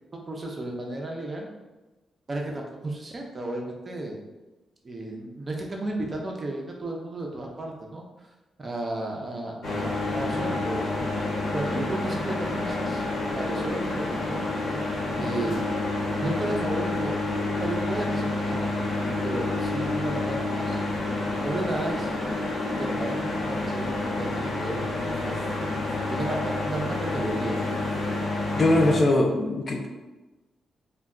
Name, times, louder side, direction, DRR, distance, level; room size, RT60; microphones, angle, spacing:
voice 1, 0.1-1.5 2.3-4.2 4.8-8.0 8.6-10.9 11.5-13.0 13.3-14.4 15.2-15.7 16.2-17.2 17.4-20.8 21.4-22.5 22.8-25.4 26.1-27.7, right 2 dB, 25° right, 0 dB, 0.4 m, -33 dB
sound 1, 9.6-29.0, left 2 dB, 80° left, 1.1 m, -29 dB
voice 2, 28.6-29.9, left 1 dB, 35° left, 1 dB, 0.3 m, -21 dB
2.2 x 2.2 x 3.5 m, 1.1 s
wide cardioid pair, 150°, 0 cm